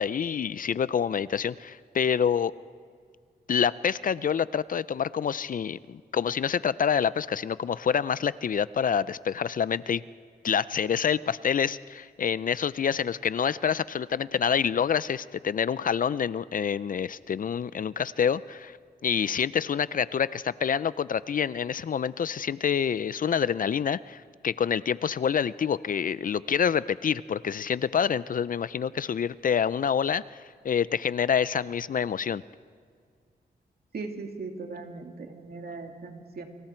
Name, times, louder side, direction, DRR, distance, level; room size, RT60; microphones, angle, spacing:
voice 1, 0.0-2.5 3.5-10.0 10.4-18.8 19.0-32.4, left 7 dB, 55° left, 17 dB, 0.5 m, -27 dB
voice 2, 33.9-36.4, right 3 dB, 65° right, 3 dB, 2.6 m, -38 dB
29.0 x 24.5 x 4.5 m, 2.1 s
wide cardioid pair, 95°, 17 cm